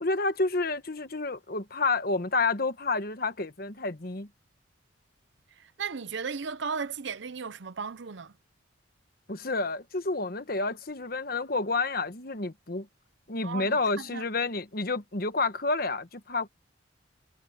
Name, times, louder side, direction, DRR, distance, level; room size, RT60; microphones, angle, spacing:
voice 1, 0.0-4.3 9.3-12.9 13.3-16.5, left 3 dB, 50° left, 1.3 m, -29 dB
voice 2, 5.6-8.3 13.4-14.3, right 5 dB, 70° right, 0.7 m, -36 dB
head